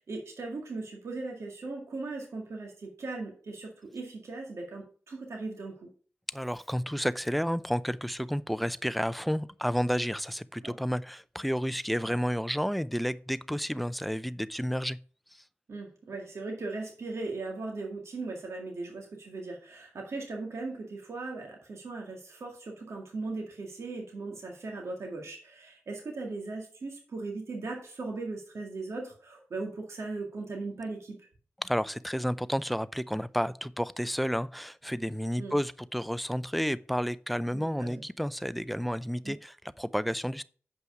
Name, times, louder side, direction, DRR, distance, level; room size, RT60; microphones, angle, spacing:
voice 1, 0.1-5.9 10.6-10.7 12.0-12.1 15.7-31.2 35.4-35.5 37.5-38.0 39.2-39.3, right 3 dB, 75° right, 1.9 m, -38 dB
voice 2, 6.3-15.0 31.6-40.4, equal, ahead, 0.5 m, -31 dB
7.8 x 5.5 x 4.9 m
cardioid pair, 50°, 5 cm